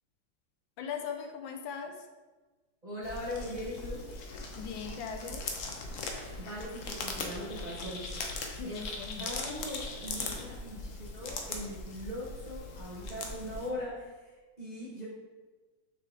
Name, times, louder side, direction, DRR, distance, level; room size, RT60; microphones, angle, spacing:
voice 1, 0.8-2.1 4.5-5.5 8.5-9.3, left 6 dB, 80° left, 4 dB, 1.4 m, -39 dB
voice 2, 2.8-4.0 6.1-8.0 8.7-8.8 9.2-15.1, equal, 35° right, -6 dB, 0.7 m, -40 dB
sound 1, 3.0-13.7, left 3 dB, 65° left, 0.8 m, -40 dB
5.9 x 4.5 x 3.5 m, 1.3 s
omnidirectional pair, 2.2 m